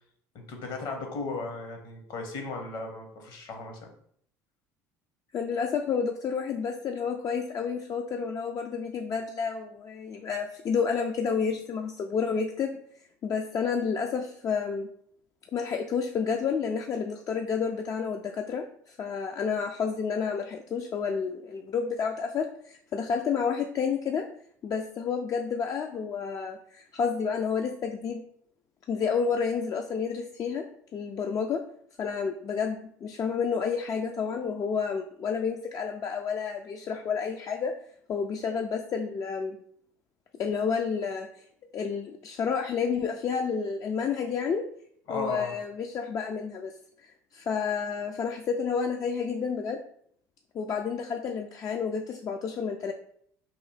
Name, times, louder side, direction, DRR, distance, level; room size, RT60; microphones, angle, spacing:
voice 1, 0.3-3.9 45.1-45.5, left 3 dB, 55° left, 4 dB, 0.9 m, -36 dB
voice 2, 5.3-12.8 13.2-14.9 15.5-24.3 24.6-28.2 28.9-31.6 32.0-37.7 38.1-39.6 40.4-41.4 41.7-44.7 45.1-46.7 47.0-49.8 50.5-52.9, left 6 dB, 40° left, 4 dB, 0.3 m, -30 dB
3.0 x 2.6 x 4.0 m, 0.65 s
hypercardioid pair, 70°, 9 cm